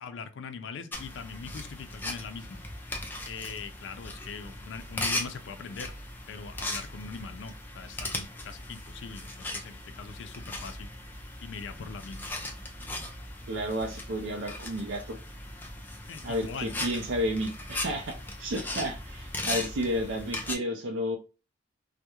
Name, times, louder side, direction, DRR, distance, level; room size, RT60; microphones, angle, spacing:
voice 1, 0.0-2.6 3.3-5.9 6.3-10.9 11.4-12.3 16.1-16.8, left 5 dB, 80° left, 9 dB, 0.4 m, -41 dB
sound 1, 0.9-20.5, left 2 dB, 10° left, 0.4 m, -38 dB
voice 2, 13.5-15.2 16.2-21.2, equal, 90° right, 3 dB, 0.4 m, -32 dB
2.3 x 2.1 x 2.9 m, 0.31 s
head